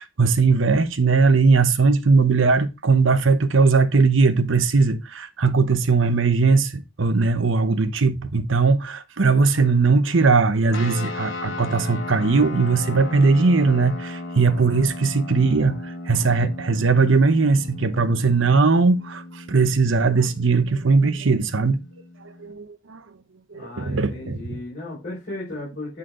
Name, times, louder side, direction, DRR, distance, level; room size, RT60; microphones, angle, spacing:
voice 1, 0.0-21.8 22.4-23.0 23.5-24.6, right 4 dB, 75° right, 0.8 m, -19 dB
sound 1, 10.7-22.5, left 2 dB, 80° left, 1.8 m, -36 dB
voice 2, 23.5-26.0, left 2 dB, 45° left, 5.1 m, -35 dB
9.3 x 4.2 x 3.7 m
head